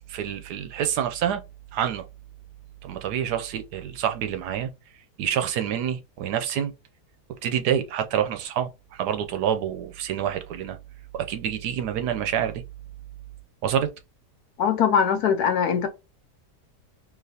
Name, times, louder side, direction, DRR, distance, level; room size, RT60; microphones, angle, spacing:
voice 1, 0.1-1.4 1.7-2.0 2.8-4.7 5.2-6.7 7.4-8.7 9.0-10.8 11.1-12.6 13.6-13.9, right 9 dB, 75° right, 1.1 m, -27 dB
voice 2, 14.6-15.9, left 7 dB, 70° left, 1.1 m, -21 dB
3.9 x 3.0 x 2.7 m
omnidirectional pair, 1.8 m